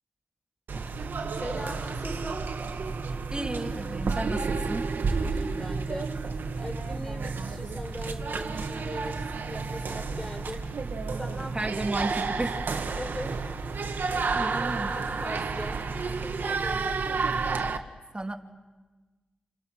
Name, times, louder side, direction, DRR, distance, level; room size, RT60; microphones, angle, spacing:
sound 1, 0.7-17.8, right 4 dB, 75° right, 1.6 m, -31 dB
voice 1, 1.4-2.4 5.2-6.1 6.6-10.7 11.2-11.7 13.0-13.3 13.9-15.8 16.0-17.2, equal, 15° left, 3 dB, 4.8 m, -40 dB
voice 2, 3.3-4.9 11.5-12.6 14.3-15.0 18.1-18.4, right 2 dB, 30° right, 3 dB, 3.0 m, -33 dB
30.0 x 29.0 x 6.3 m, 1.2 s
cardioid pair, 45°, 3 cm